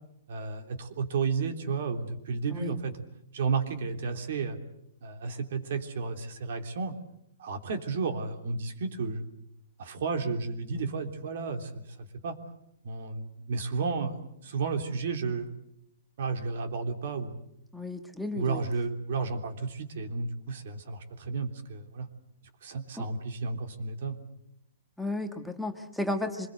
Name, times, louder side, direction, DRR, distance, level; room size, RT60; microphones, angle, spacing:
voice 1, 0.3-3.0 3.3-4.6 5.0-6.9 7.4-9.3 9.8-11.8 12.2-12.3 12.8-15.5 16.2-17.4 18.3-22.1 22.6-24.2, right 4 dB, 60° right, 6 dB, 3.3 m, -32 dB
voice 2, 17.7-18.6 23.0-23.1 25.0-26.5, left 2 dB, ahead, 5 dB, 1.4 m, -33 dB
25.5 x 21.0 x 8.1 m, 0.79 s
hypercardioid pair, 155°, 0 cm